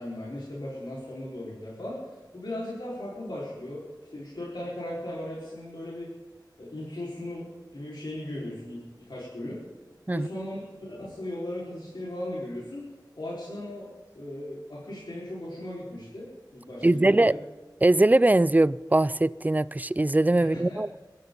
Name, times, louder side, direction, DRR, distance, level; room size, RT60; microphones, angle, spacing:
voice 1, 0.0-6.1 6.6-9.6 10.1-12.8 13.1-13.9 14.1-17.3 20.5-20.9, left 1 dB, 75° left, 4.6 m, -37 dB
voice 2, 16.8-17.4 17.8-21.0, right 2 dB, 20° right, 0.4 m, -21 dB
24.0 x 13.0 x 4.0 m
wide cardioid pair, 45°, 8 cm